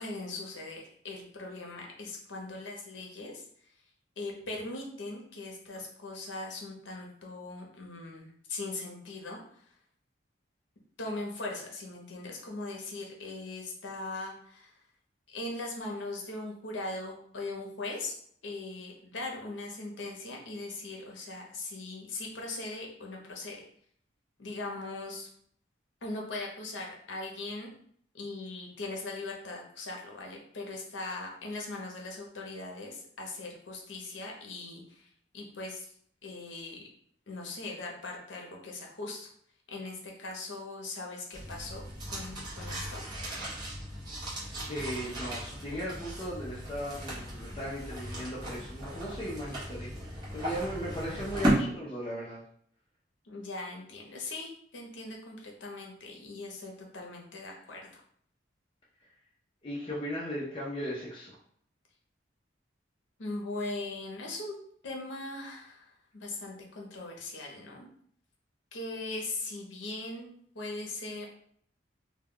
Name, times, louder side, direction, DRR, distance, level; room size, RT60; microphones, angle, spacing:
voice 1, 0.0-3.5 4.2-9.6 11.0-14.7 15.3-18.1 18.4-23.6 24.4-25.3 26.0-27.7 28.1-35.9 36.2-36.8 37.3-39.3 39.7-41.8 42.1-43.0 53.2-58.0 63.2-64.6 64.8-67.9 68.7-70.3 70.5-71.3, left 2 dB, 75° left, 0 dB, 0.7 m, -40 dB
sound 1, 41.3-51.5, equal, 25° right, 0.8 m, -36 dB
voice 2, 44.7-52.4 59.6-61.3, equal, 30° left, -6 dB, 0.5 m, -37 dB
2.2 x 2.1 x 3.5 m, 0.63 s
head